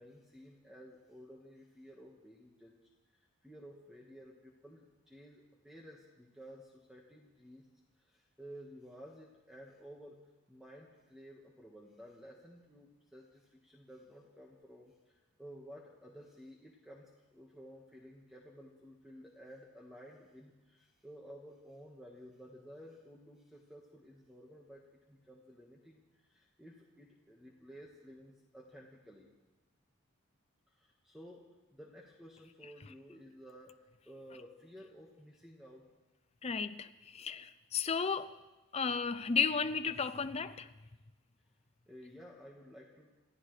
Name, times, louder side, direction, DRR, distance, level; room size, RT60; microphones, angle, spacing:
voice 1, 0.0-2.8 3.1-7.7 8.0-10.2 10.5-29.3 30.7-31.4 31.7-35.9 41.9-43.2, equal, ahead, -3 dB, 1.4 m, -54 dB
voice 2, 36.4-38.3 38.7-40.7, left 5 dB, 30° left, 10 dB, 0.5 m, -34 dB
29.0 x 15.0 x 3.3 m, 1.1 s
head